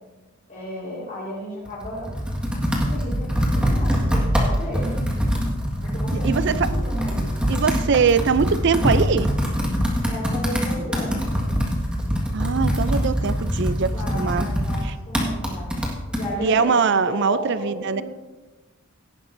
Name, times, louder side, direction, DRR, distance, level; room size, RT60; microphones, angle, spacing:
voice 1, 0.5-2.1 2.9-4.9 5.8-7.4 10.0-11.3 13.8-15.7 16.1-18.0, equal, 35° left, -10 dB, 4.2 m, -33 dB
Computer keyboard, 1.7-16.3, equal, 5° right, 1.7 m, -24 dB
voice 2, 6.2-6.7 7.5-9.3 12.3-14.5 14.8-14.9 16.4-18.0, right 5 dB, 55° right, 14 dB, 0.5 m, -22 dB
17.0 x 11.0 x 2.7 m, 1.2 s
head